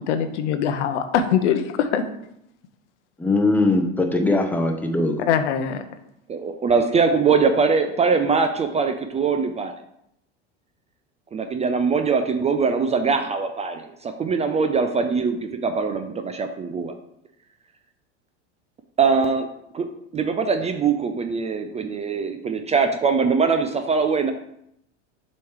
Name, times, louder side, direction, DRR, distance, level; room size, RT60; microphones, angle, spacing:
voice 1, 0.1-2.0 5.2-5.8, left 8 dB, 75° left, 8 dB, 0.8 m, -22 dB
voice 2, 3.2-5.2, left 2 dB, 5° left, 5 dB, 0.8 m, -21 dB
voice 3, 6.3-9.7 11.3-16.9 19.0-19.5 19.7-19.9 20.1-24.3, right 5 dB, 20° right, 7 dB, 0.4 m, -22 dB
6.9 x 3.2 x 4.7 m, 0.77 s
hypercardioid pair, 95°, 36 cm